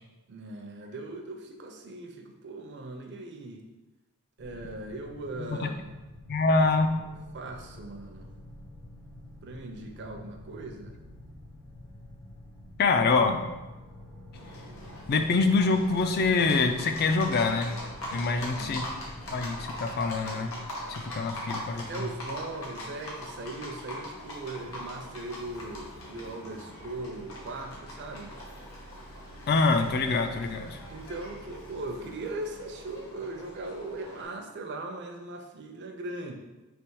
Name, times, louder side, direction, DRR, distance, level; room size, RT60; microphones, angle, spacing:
voice 1, 0.3-3.6 4.4-5.8 7.3-8.3 9.4-11.0 18.1-18.8 21.1-21.2 21.9-28.4 30.9-36.3, right 2 dB, 50° right, 4 dB, 0.5 m, -39 dB
sound 1, 4.4-19.7, left 1 dB, 80° left, 0.9 m, -48 dB
voice 2, 5.4-5.7 6.3-6.9 12.8-13.4 15.1-17.7 18.1-18.8 19.3-20.5 20.9-22.1 29.5-30.8, left 3 dB, 45° left, 6 dB, 0.4 m, -25 dB
Livestock farm animals working animals, 14.3-34.2, left 1 dB, 65° left, 1.1 m, -42 dB
3.3 x 2.9 x 4.6 m, 1.1 s
head